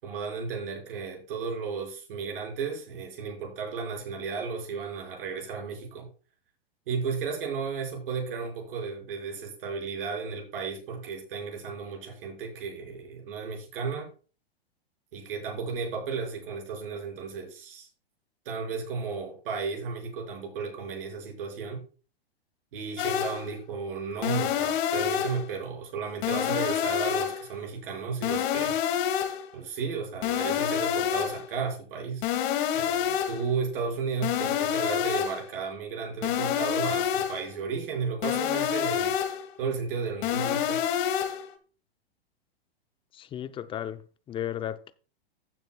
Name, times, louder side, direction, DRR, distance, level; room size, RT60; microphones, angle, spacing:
voice 1, 0.0-6.1 6.9-14.1 15.1-17.9 18.4-21.8 22.7-28.8 29.5-32.2 32.7-39.2 39.6-40.9, right 5 dB, 60° right, 5.2 m, -34 dB
sound 1, 23.0-23.5 24.2-25.5 26.2-27.5 28.2-29.5 30.2-31.5 32.2-33.5 34.2-35.5 36.2-37.5 38.2-39.5 40.2-41.5, left 9 dB, 50° left, 2.1 m, -28 dB
voice 2, 43.1-44.0 44.3-44.9, left 10 dB, 15° left, 0.5 m, -34 dB
15.5 x 7.5 x 2.3 m
hypercardioid pair, 120°, 31 cm